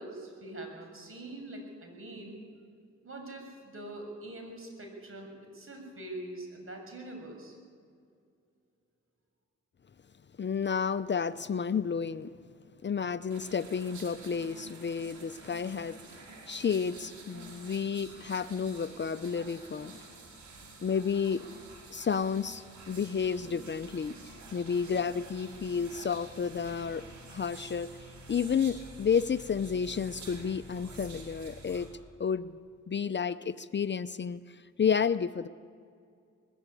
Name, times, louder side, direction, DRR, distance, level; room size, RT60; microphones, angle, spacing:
voice 1, 0.0-2.4 3.0-7.6, right 1 dB, 45° right, 3 dB, 7.0 m, -43 dB
voice 2, 10.4-12.3 12.8-16.2 16.5-19.9 20.8-21.4 21.9-24.1 24.5-27.0 27.3-31.9 32.2-32.6 32.9-35.5, left 6 dB, 40° left, 13 dB, 0.7 m, -31 dB
sound 1, 13.3-31.9, right 2 dB, 75° right, 5.1 m, -49 dB
20.5 x 15.0 x 9.9 m, 2.3 s
cardioid pair, 65°, 29 cm